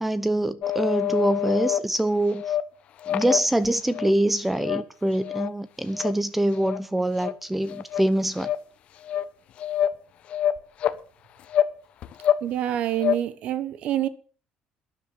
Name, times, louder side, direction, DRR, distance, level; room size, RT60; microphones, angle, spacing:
voice 1, 0.0-2.4 3.1-8.5, right 1 dB, 5° right, 0.8 m, -24 dB
sound 1, 0.6-1.8 2.3-2.6 3.0-4.1 4.5-4.8 5.2-5.5 5.9-6.1 6.5-6.8 7.2-7.3 7.7-8.1 8.4-8.6 9.0-9.2 9.6-10.0 10.3-11.0 11.5-11.7 12.0-12.4 12.7-13.2, left 10 dB, 50° left, 1.0 m, -26 dB
voice 2, 12.4-14.1, right 12 dB, 55° right, 1.1 m, -26 dB
12.0 x 10.5 x 7.1 m
cardioid pair, 150°, 3 cm